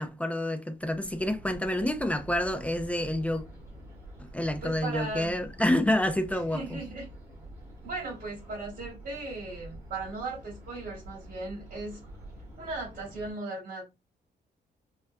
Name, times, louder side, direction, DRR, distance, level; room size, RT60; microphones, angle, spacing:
voice 1, 0.0-3.4 4.2-6.8, left 1 dB, 10° left, 0.4 m, -28 dB
sound 1, 0.8-13.3, right 1 dB, 15° right, 1.5 m, -47 dB
voice 2, 4.6-5.3 6.5-7.1 7.8-12.0 12.6-13.8, right 2 dB, 55° right, 2.0 m, -37 dB
4.3 x 2.4 x 2.6 m
wide cardioid pair, 155°, 18 cm